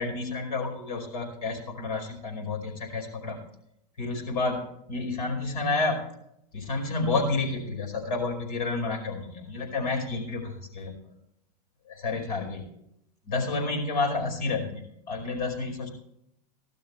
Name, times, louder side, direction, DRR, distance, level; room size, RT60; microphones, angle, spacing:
voice 1, 0.0-3.4 4.0-6.0 6.5-10.9 11.9-12.6 13.3-15.9, left 3 dB, 60° left, 2 dB, 5.0 m, -30 dB
17.0 x 12.0 x 3.3 m, 0.77 s
hypercardioid pair, 100°, 20 cm